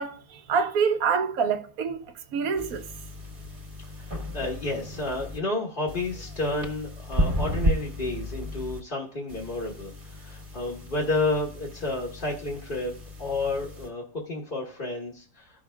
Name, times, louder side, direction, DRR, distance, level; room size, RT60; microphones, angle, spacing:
voice 1, 0.0-2.0 2.3-2.8, right 6 dB, 75° right, 1.2 m, -26 dB
sound 1, 2.6-5.4 5.9-8.8 9.3-13.9, equal, 35° right, 1.7 m, -33 dB
voice 2, 4.0-12.9 13.2-15.6, left 2 dB, 35° left, 1.4 m, -31 dB
14.5 x 6.0 x 2.3 m
omnidirectional pair, 1.5 m